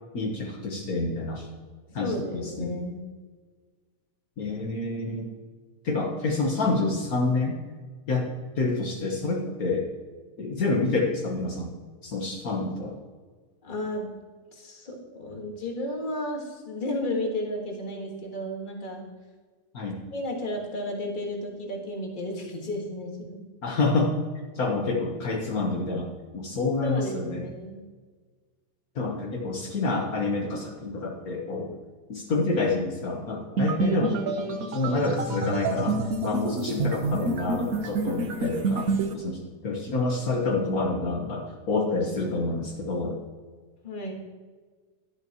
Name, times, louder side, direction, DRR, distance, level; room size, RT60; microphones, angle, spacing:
voice 1, 0.1-1.5 1.9-2.7 4.4-5.3 5.8-7.6 8.1-8.3 8.6-9.9 10.4-11.7 12.0-13.0 19.7-20.0 23.6-24.1 24.5-27.4 28.9-31.7 32.1-34.2 34.7-43.2, left 3 dB, 65° left, 0 dB, 1.6 m, -28 dB
voice 2, 1.9-3.0 13.6-14.2 14.5-19.1 20.1-23.5 26.8-27.8 43.8-44.1, left 1 dB, 30° left, 0 dB, 1.8 m, -33 dB
sound 1, 33.6-39.1, right 3 dB, 65° right, 1.3 m, -28 dB
11.5 x 11.0 x 3.0 m, 1.4 s
omnidirectional pair, 1.7 m